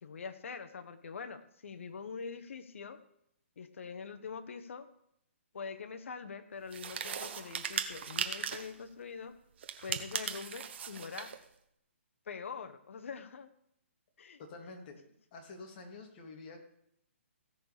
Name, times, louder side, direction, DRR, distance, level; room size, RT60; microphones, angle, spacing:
voice 1, 0.0-3.0 3.6-4.9 5.5-9.4 9.8-11.3 12.3-13.5 14.2-14.4, left 5 dB, 70° left, 10 dB, 1.3 m, -44 dB
sound 1, 6.7-8.8 9.6-11.4, right 8 dB, 55° right, 1.3 m, -38 dB
voice 2, 14.4-15.0 15.3-16.6, left 3 dB, 40° left, 2 dB, 2.6 m, -48 dB
16.5 x 6.7 x 5.1 m, 0.74 s
hypercardioid pair, 150°, 7 cm